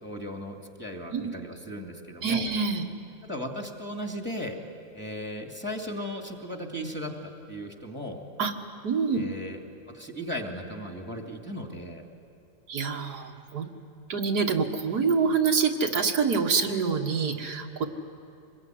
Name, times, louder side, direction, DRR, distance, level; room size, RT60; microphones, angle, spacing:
voice 1, 0.0-2.5 3.2-4.6 4.9-8.2 9.1-9.6 9.9-12.0, equal, 5° left, 2 dB, 2.5 m, -36 dB
voice 2, 2.2-2.9 8.4-8.5 8.8-9.2 12.7-13.7 14.1-17.9, right 5 dB, 90° right, 3 dB, 2.1 m, -26 dB
25.5 x 21.5 x 9.4 m, 2.8 s
omnidirectional pair, 1.6 m